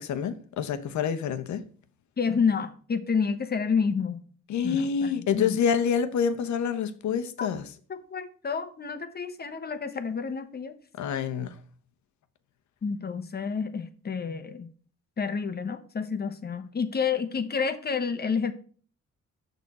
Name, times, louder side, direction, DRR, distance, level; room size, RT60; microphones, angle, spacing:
voice 1, 0.0-1.6 4.5-7.6 11.0-11.5, left 7 dB, 70° left, 1.0 m, -27 dB
voice 2, 2.2-4.2 4.6-5.5 7.4-7.5 7.9-10.7 12.8-14.7 15.2-18.5, left 5 dB, 30° left, 0.9 m, -29 dB
6.8 x 6.1 x 4.2 m
cardioid pair, 90°, 30 cm